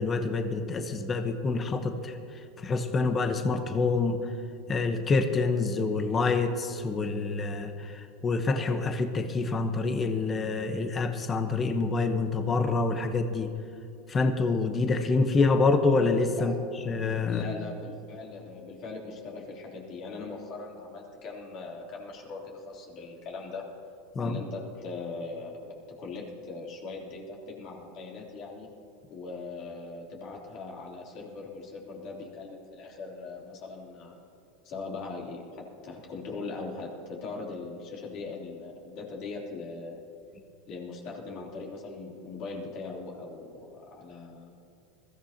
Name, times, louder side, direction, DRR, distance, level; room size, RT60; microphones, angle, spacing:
voice 1, 0.0-2.2 2.6-4.2 4.7-13.5 14.1-16.5 16.9-17.4 24.1-24.4, left 3 dB, 25° left, 7 dB, 1.0 m, -27 dB
voice 2, 17.3-23.7 24.2-28.7 29.1-34.2 34.6-40.0 40.7-44.5, left 3 dB, 50° left, -2 dB, 3.3 m, -40 dB
21.0 x 14.5 x 2.9 m, 2.6 s
supercardioid pair, 115°, 0 cm